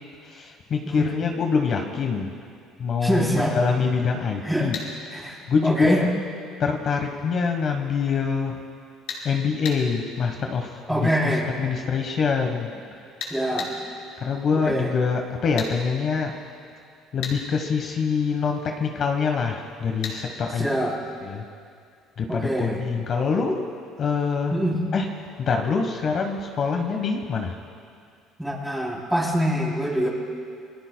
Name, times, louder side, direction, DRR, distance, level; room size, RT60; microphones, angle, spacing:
voice 1, 0.2-2.3 2.8-4.7 5.5-6.1 6.6-8.6 9.2-11.1 11.6-12.7 14.2-16.4 17.1-20.7 21.2-21.4 22.2-23.6 24.0-24.5 24.9-25.1 25.4-27.6, left 5 dB, 40° left, 3 dB, 1.2 m, -25 dB
voice 2, 3.0-3.6 4.4-4.7 5.1-6.0 10.9-11.5 13.3-13.7 14.5-14.9 20.6-20.9 22.3-22.8 24.5-24.8 28.4-30.1, equal, 5° right, -3 dB, 3.2 m, -25 dB
sound 1, 4.7-4.9 9.1-9.3 9.6-9.8 13.2-13.7 15.6-15.7 17.2-17.4 20.0-20.2, left 6 dB, 70° left, 4.4 m, -32 dB
28.0 x 21.5 x 2.3 m, 2.3 s
cardioid pair, 130°, 0 cm